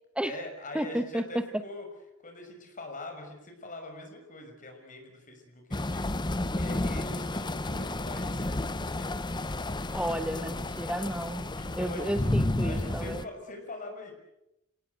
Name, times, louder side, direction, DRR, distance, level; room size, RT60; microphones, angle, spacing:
voice 1, 0.2-1.9 2.2-6.1 6.6-9.1 9.9-10.1 11.5-14.1, left 2 dB, 40° left, 4 dB, 5.9 m, -44 dB
voice 2, 0.7-1.6 9.9-11.5 11.8-13.2, right 1 dB, 5° right, 10 dB, 1.2 m, -32 dB
sound 1, 5.7-13.2, left 1 dB, 20° left, 0.9 m, -31 dB
29.5 x 18.5 x 8.2 m, 0.87 s
head